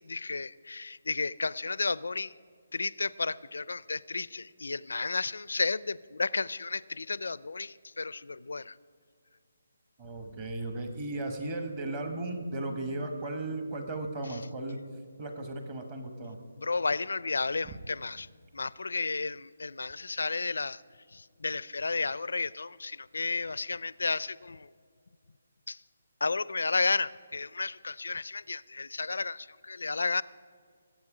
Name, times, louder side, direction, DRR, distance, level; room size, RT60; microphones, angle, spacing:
voice 1, 0.1-2.3 2.7-8.7 16.6-18.3 18.5-20.8 21.4-24.7 25.7-25.8 26.2-30.2, left 3 dB, 85° left, 19 dB, 0.4 m, -32 dB
voice 2, 10.0-14.8 15.2-16.4 17.6-17.8, right 2 dB, 25° right, 5 dB, 1.1 m, -36 dB
21.0 x 8.3 x 4.9 m, 2.1 s
hypercardioid pair, 165°, 0 cm